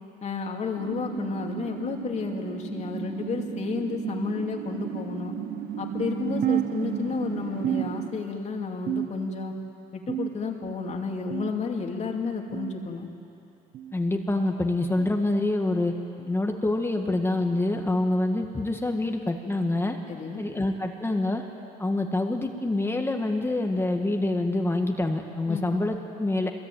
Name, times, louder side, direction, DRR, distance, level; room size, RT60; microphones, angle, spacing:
voice 1, 0.2-5.3 5.8-9.5 9.9-13.1 20.1-20.5 25.5-25.7, left 4 dB, 45° left, 2 dB, 2.8 m, -31 dB
sound 1, 0.8-8.1, right 7 dB, 85° right, 1.7 m, -35 dB
sound 2, 6.4-7.3 7.6-8.4 8.9-9.5 10.1-10.7 11.3-11.7 12.5-12.8 13.7-14.0 15.0-15.2 16.2-16.4 17.4-17.6 18.6-18.8 19.8-19.9 21.1-21.2, right 10 dB, 60° right, 1.3 m, -31 dB
voice 2, 13.9-15.9 16.3-20.0 20.4-21.4 21.8-26.5, left 2 dB, 15° left, 3 dB, 1.7 m, -26 dB
24.0 x 21.5 x 9.3 m, 2.8 s
cardioid pair, 110°, 17 cm